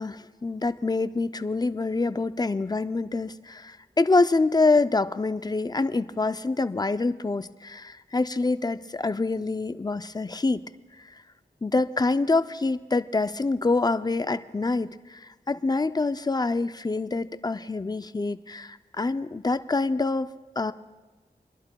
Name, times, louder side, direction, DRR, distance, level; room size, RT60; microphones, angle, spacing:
voice 1, 0.0-10.6 11.0-11.1 11.6-20.3 20.6-20.7, left 3 dB, 25° left, 13 dB, 0.4 m, -26 dB
29.5 x 11.5 x 2.3 m, 1.2 s
wide cardioid pair, 45°, 17 cm